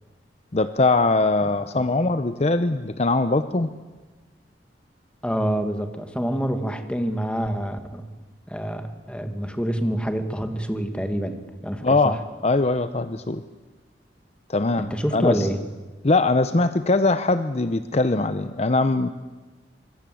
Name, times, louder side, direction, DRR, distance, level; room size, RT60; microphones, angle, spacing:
voice 1, 0.5-3.7 11.8-12.2 12.4-13.4 14.5-15.5 16.0-19.1, left 3 dB, 40° left, 11 dB, 0.7 m, -21 dB
voice 2, 5.2-8.1 8.5-11.4 11.6-12.2 14.8-15.6, equal, 5° left, 7 dB, 1.9 m, -27 dB
25.0 x 22.5 x 7.8 m, 1.3 s
head